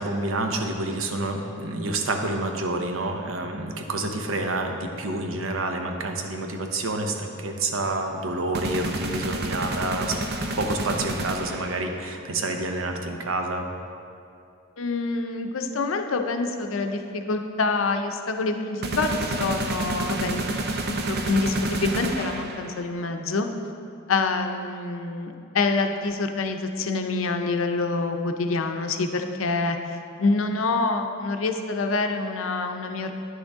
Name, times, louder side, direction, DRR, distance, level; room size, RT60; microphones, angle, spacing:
voice 1, 0.0-10.2 10.6-13.7, right 2 dB, 90° right, 4 dB, 0.8 m, -28 dB
sound 1, 8.5-11.9 18.8-22.9, right 2 dB, 55° right, 0.6 m, -29 dB
voice 2, 14.8-20.4 21.0-23.5 24.1-33.2, left 3 dB, 80° left, 6 dB, 0.6 m, -26 dB
9.5 x 6.3 x 3.6 m, 2.5 s
head